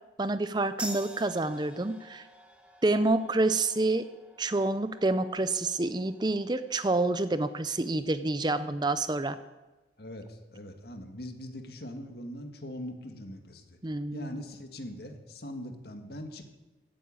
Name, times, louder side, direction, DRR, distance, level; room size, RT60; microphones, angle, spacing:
voice 1, 0.2-2.2 2.8-4.1 4.4-9.4 13.8-14.3, right 2 dB, 25° right, 12 dB, 0.5 m, -28 dB
sound 1, 0.8-7.9, right 1 dB, 5° right, 1.7 m, -47 dB
voice 2, 10.0-13.8 14.1-16.6, equal, 55° left, 5 dB, 1.8 m, -41 dB
15.0 x 9.4 x 8.8 m, 1.1 s
head